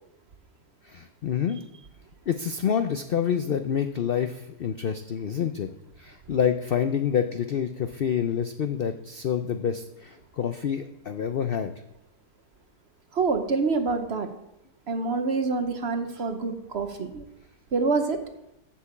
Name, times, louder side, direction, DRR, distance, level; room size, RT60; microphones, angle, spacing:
voice 1, 0.8-1.6 2.3-5.7 6.0-11.7, left 8 dB, 75° left, 8 dB, 0.5 m, -27 dB
voice 2, 13.1-14.3 14.9-17.2 17.7-18.2, right 4 dB, 50° right, 7 dB, 1.0 m, -26 dB
8.4 x 7.5 x 7.2 m, 0.87 s
omnidirectional pair, 1.7 m